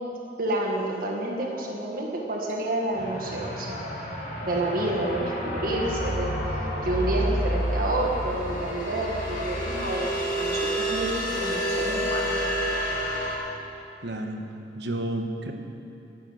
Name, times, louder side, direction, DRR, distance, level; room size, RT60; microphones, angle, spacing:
voice 1, 0.4-3.8 4.4-12.5, right 1 dB, 50° right, -1 dB, 1.6 m, -29 dB
sound 1, 2.5-3.7, left 2 dB, 35° right, 2.3 m, -44 dB
sound 2, 2.9-13.4, equal, 45° left, 2.6 m, -29 dB
voice 2, 14.0-14.4 14.7-15.5, right 1 dB, 70° right, 4 dB, 1.3 m, -31 dB
12.0 x 10.5 x 7.9 m, 2.8 s
head